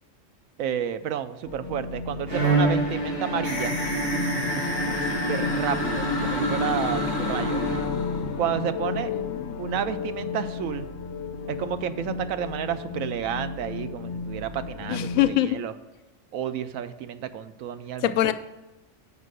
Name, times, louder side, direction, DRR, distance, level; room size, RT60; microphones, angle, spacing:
voice 1, 0.6-3.8 4.3-7.6 8.4-9.1 9.6-10.9 11.5-15.7 16.3-18.1, right 9 dB, 85° right, 11 dB, 1.0 m, -31 dB
sound 1, 1.5-15.3, left 5 dB, 65° left, 0.9 m, -33 dB
Bowed string instrument, 2.3-8.3, right 2 dB, 60° right, 2.9 m, -28 dB
sound 2, 3.4-8.3, left 1 dB, 30° left, 1.0 m, -33 dB
voice 2, 9.1-9.6 14.9-15.6 18.0-18.3, left 13 dB, 90° left, 11 dB, 1.0 m, -24 dB
7.4 x 5.3 x 6.4 m, 1.0 s
omnidirectional pair, 1.4 m